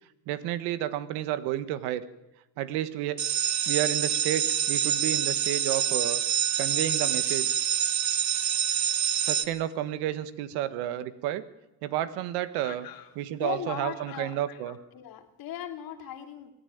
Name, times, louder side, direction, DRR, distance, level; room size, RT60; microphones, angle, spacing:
voice 1, 0.3-2.0 2.6-3.2 3.7-6.2 6.6-7.5 9.2-11.4 11.8-12.9 13.1-14.8, right 12 dB, 90° right, 14 dB, 1.5 m, -31 dB
sound 1, 3.2-9.4, right 9 dB, 45° right, 1.6 m, -26 dB
voice 2, 12.6-16.5, left 10 dB, 65° left, 7 dB, 2.9 m, -39 dB
24.5 x 14.0 x 9.4 m, 0.94 s
cardioid pair, 105°, 38 cm